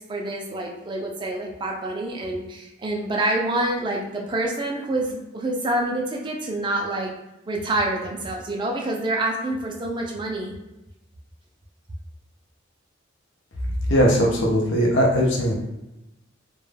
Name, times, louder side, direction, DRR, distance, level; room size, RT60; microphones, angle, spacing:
voice 1, 0.1-7.1 7.5-10.5, right 1 dB, 25° right, 0 dB, 0.3 m, -27 dB
voice 2, 13.9-15.6, equal, 60° left, -2 dB, 0.5 m, -19 dB
2.2 x 2.1 x 3.2 m, 0.96 s
head